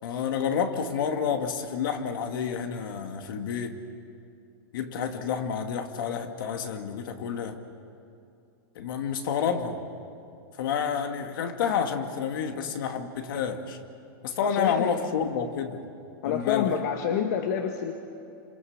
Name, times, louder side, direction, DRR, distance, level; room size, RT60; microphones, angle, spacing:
voice 1, 0.0-3.8 4.7-7.6 8.8-9.8 10.6-13.8 14.2-15.8 16.2-16.8, left 7 dB, 65° left, 5 dB, 2.4 m, -29 dB
voice 2, 14.4-14.9 16.2-17.9, left 8 dB, 50° left, 4 dB, 1.7 m, -28 dB
28.5 x 26.5 x 7.4 m, 2.6 s
supercardioid pair, 160°, 12 cm